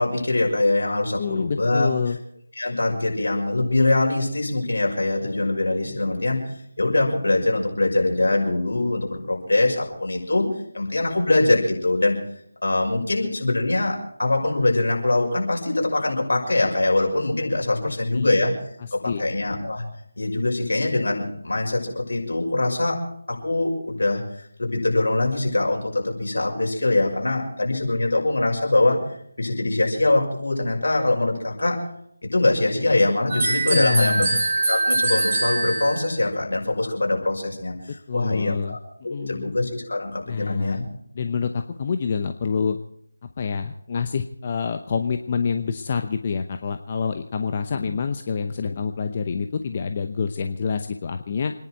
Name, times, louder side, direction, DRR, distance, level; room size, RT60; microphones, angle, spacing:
voice 1, 0.0-1.9 2.6-6.4 6.8-10.5 10.7-12.2 12.6-18.5 18.9-19.8 20.2-23.0 23.3-29.0 29.4-31.8 32.2-34.2 34.7-38.8 39.0-40.8 47.7-47.9, left 2 dB, 75° left, 1 dB, 6.1 m, -23 dB
voice 2, 1.2-2.2 17.8-18.3 19.0-19.2 33.7-34.4 38.1-38.8 39.1-39.5 40.3-40.8 41.1-42.8 43.4-51.5, left 5 dB, 35° left, 7 dB, 0.8 m, -27 dB
sound 1, 33.3-36.1, right 2 dB, 30° right, 4.6 m, -23 dB
28.0 x 10.5 x 4.6 m, 0.68 s
figure-of-eight pair, 165°, 0 cm